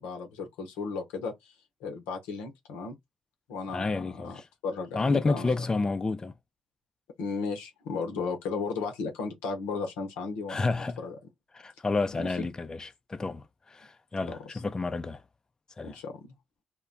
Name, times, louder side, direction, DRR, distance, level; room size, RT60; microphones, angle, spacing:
voice 1, 0.0-1.5 1.8-3.0 3.5-4.4 4.6-5.6 7.2-10.6 11.0-11.2 12.2-12.5 14.3-14.4 15.8-16.2, left 4 dB, 85° left, 0.7 m, -35 dB
voice 2, 3.7-4.5 4.9-6.3 10.5-11.0 11.5-15.2 15.8-16.0, left 3 dB, 30° left, 0.4 m, -30 dB
2.2 x 2.1 x 3.7 m
hypercardioid pair, 50°, 2 cm